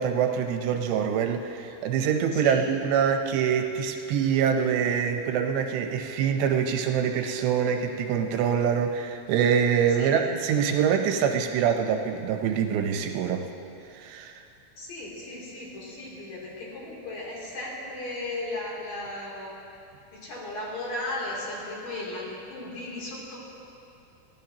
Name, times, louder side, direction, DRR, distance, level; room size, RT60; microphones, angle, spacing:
voice 1, 0.0-13.5 13.9-14.4, right 7 dB, 80° right, 4 dB, 2.9 m, -25 dB
voice 2, 2.3-2.6 10.0-10.1 14.8-19.5 20.1-23.4, left 2 dB, 55° left, -6 dB, 4.5 m, -36 dB
23.5 x 16.0 x 2.9 m, 2.7 s
omnidirectional pair, 5.1 m